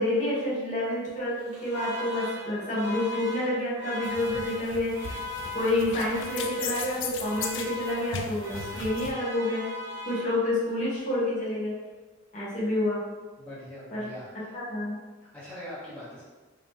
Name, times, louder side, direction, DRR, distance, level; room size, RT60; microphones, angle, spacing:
voice 1, 0.0-5.3 5.5-9.6 10.1-11.8 12.3-13.0 13.9-14.1 14.5-15.0, left 1 dB, 40° left, -8 dB, 1.1 m, -28 dB
Alarm, 1.3-10.7, left 2 dB, 75° right, 1.2 m, -39 dB
sound 1, 4.0-9.1, left 5 dB, 85° left, 0.4 m, -37 dB
voice 2, 13.4-14.6 15.2-16.2, left 1 dB, 5° left, -11 dB, 1.0 m, -42 dB
3.8 x 2.8 x 3.6 m, 1.3 s
head